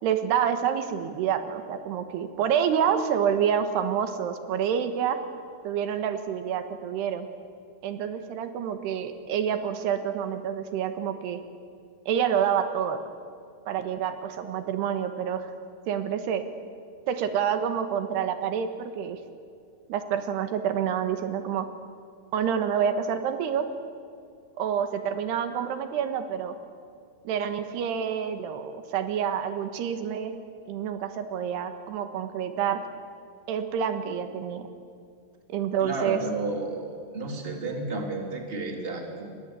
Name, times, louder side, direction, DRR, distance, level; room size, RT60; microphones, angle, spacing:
voice 1, 0.0-5.2 5.6-7.3 7.8-11.4 12.1-13.0 13.7-15.5 15.9-16.4 17.1-19.2 19.9-21.7 22.3-23.7 24.6-26.5 27.2-30.3 30.7-32.8 33.5-34.7 35.5-36.2, right 8 dB, 85° right, 8 dB, 3.5 m, -28 dB
voice 2, 35.8-39.3, right 2 dB, 15° right, 2 dB, 3.0 m, -32 dB
29.5 x 23.0 x 8.2 m, 2.3 s
omnidirectional pair, 4.7 m